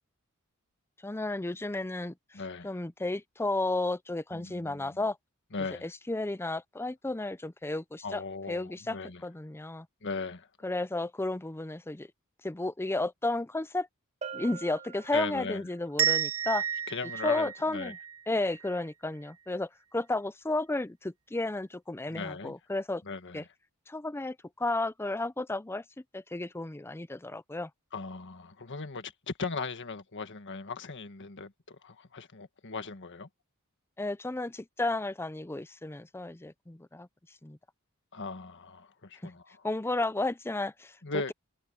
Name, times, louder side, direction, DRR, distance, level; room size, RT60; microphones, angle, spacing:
voice 1, 1.0-5.2 5.8-8.2 8.5-9.0 9.2-9.9 10.6-12.1 12.4-13.9 14.3-16.6 17.2-18.0 18.3-23.0 23.3-23.4 23.9-25.8 26.1-27.7 34.0-37.1 37.4-37.6 39.2-39.3 39.6-41.3, left 2 dB, 10° left, 0.5 m, -33 dB
voice 2, 2.3-2.8 4.3-5.0 5.5-5.9 8.0-9.2 10.0-10.5 15.1-15.6 16.9-17.9 22.1-22.5 23.0-23.5 27.9-33.3 38.1-39.7 41.0-41.3, left 4 dB, 55° left, 1.7 m, -38 dB
Bell, 14.2-15.8, right 6 dB, 30° right, 0.8 m, -43 dB
sound 1, 16.0-18.8, right 10 dB, 70° right, 1.3 m, -31 dB
head